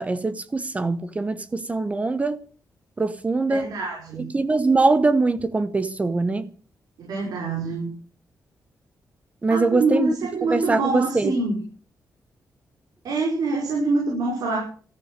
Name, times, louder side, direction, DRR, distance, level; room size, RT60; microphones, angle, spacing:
voice 1, 0.0-2.4 3.0-3.7 4.2-6.5 9.4-10.2 10.5-11.4, right 3 dB, 20° right, 0.9 m, -22 dB
voice 2, 3.5-4.3 7.0-7.9 9.5-11.6 13.0-14.6, right 3 dB, 80° right, 5.7 m, -25 dB
14.0 x 10.0 x 8.0 m
wide cardioid pair, 150°, 7 cm